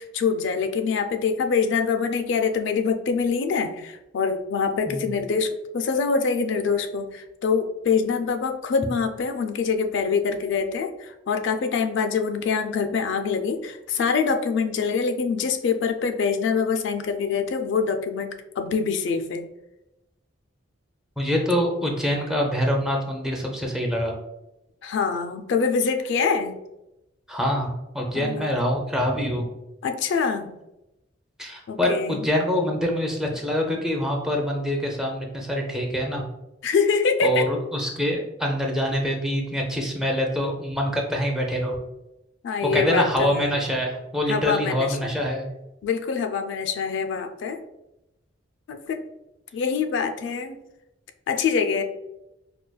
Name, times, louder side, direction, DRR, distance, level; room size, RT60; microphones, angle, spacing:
voice 1, 0.0-5.5 5.7-19.5 24.8-26.6 28.1-28.5 29.8-30.5 31.7-32.2 36.6-37.5 42.4-43.5 44.3-45.1 45.8-47.6 48.7-49.0 49.5-50.6 51.3-51.8, left 5 dB, 65° left, 6 dB, 0.3 m, -25 dB
voice 2, 21.2-24.2 27.3-29.5 31.4-36.2 37.2-41.8 42.6-45.4, equal, 5° right, 0 dB, 0.5 m, -25 dB
4.7 x 2.2 x 2.2 m, 0.91 s
head